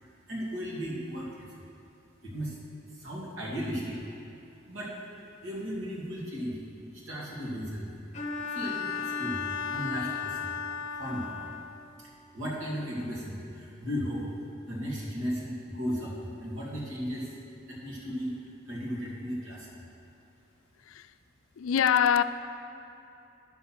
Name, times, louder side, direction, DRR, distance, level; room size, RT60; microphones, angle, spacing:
voice 1, 0.3-1.6 2.2-2.6 2.9-4.0 4.7-5.0 5.4-6.6 6.9-7.9 8.5-10.5 11.0-11.4 12.0-14.2 14.7-17.4 17.7-18.3 18.7-19.8, equal, 85° right, 2.5 m, -35 dB
Bowed string instrument, 8.1-11.9, left 6 dB, 35° left, 0.8 m, -34 dB
voice 2, 21.6-22.2, left 8 dB, 90° left, 0.4 m, -23 dB
10.0 x 6.4 x 5.9 m
head